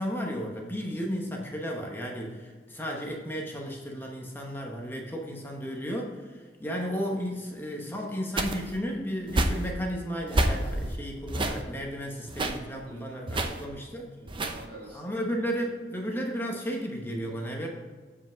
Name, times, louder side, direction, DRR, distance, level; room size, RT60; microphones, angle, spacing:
voice 1, 0.0-14.1 14.8-17.7, equal, 10° left, 0 dB, 1.0 m, -34 dB
sound 1, 8.4-8.8 9.3-9.7 10.3-11.0 11.3-11.6 12.3-12.6 13.3-13.7 14.3-14.7, right 1 dB, 30° right, 0.7 m, -28 dB
voice 2, 12.9-13.6 14.2-15.2, right 1 dB, 55° right, -2 dB, 2.1 m, -47 dB
8.0 x 5.1 x 5.1 m, 1.4 s
head